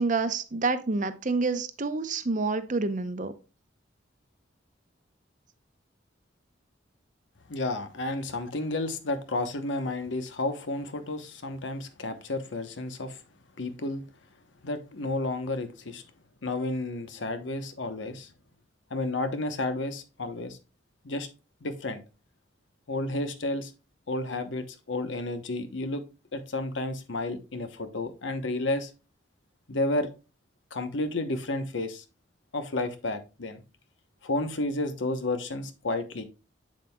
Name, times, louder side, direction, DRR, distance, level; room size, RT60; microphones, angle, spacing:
voice 1, 0.0-3.3, right 3 dB, 40° right, 11 dB, 0.7 m, -28 dB
voice 2, 7.5-13.2 13.6-14.0 14.6-16.0 16.4-18.3 18.9-20.6 21.0-21.3 21.6-22.0 22.9-23.7 24.1-26.0 26.3-28.9 29.7-30.1 30.7-32.0 32.5-33.6 34.2-36.2, left 2 dB, 80° left, 9 dB, 0.9 m, -31 dB
7.5 x 7.4 x 2.2 m, 0.31 s
head